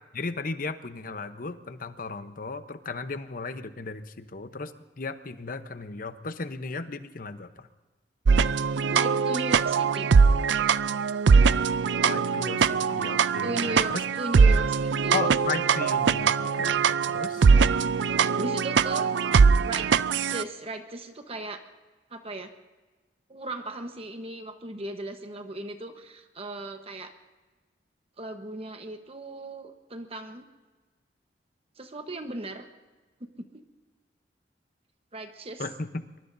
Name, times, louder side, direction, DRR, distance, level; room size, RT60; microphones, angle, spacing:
voice 1, 0.1-7.7 12.0-14.0 15.1-17.5 35.6-36.0, left 4 dB, 50° left, 10 dB, 0.9 m, -35 dB
sound 1, 8.2-20.4, right 5 dB, 80° right, 0.4 m, -22 dB
voice 2, 8.9-10.1 13.4-15.4 17.5-17.9 18.4-19.1 19.6-19.9 20.3-21.6 22.1-22.5 23.3-27.1 28.2-30.5 31.8-32.7 35.1-35.6, right 1 dB, 35° right, 6 dB, 1.1 m, -37 dB
23.0 x 23.0 x 2.7 m, 1.2 s
head